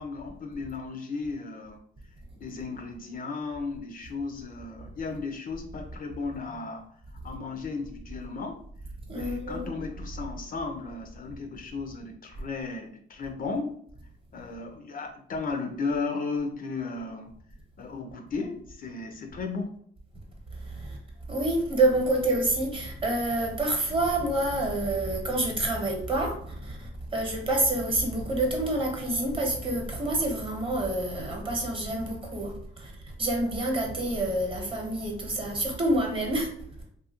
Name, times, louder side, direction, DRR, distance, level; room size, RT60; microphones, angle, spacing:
voice 1, 0.0-1.8 2.4-6.8 7.2-8.6 9.1-13.8 14.3-17.3 17.8-19.8, left 4 dB, 45° left, 4 dB, 0.5 m, -35 dB
voice 2, 9.1-9.7 20.5-21.0 21.3-36.5, right 1 dB, 25° right, 1 dB, 0.9 m, -28 dB
2.7 x 2.4 x 2.8 m, 0.64 s
cardioid pair, 90°, 20 cm